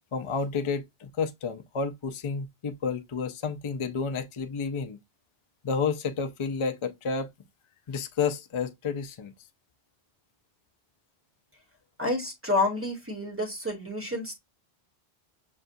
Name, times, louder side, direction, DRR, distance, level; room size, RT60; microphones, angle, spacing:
voice 1, 0.1-5.0 5.6-7.3 7.9-9.3, left 5 dB, 45° left, 0.4 m, -30 dB
voice 2, 12.0-14.4, left 2 dB, 10° right, 1.2 m, -29 dB
6.4 x 2.3 x 2.6 m
omnidirectional pair, 1.1 m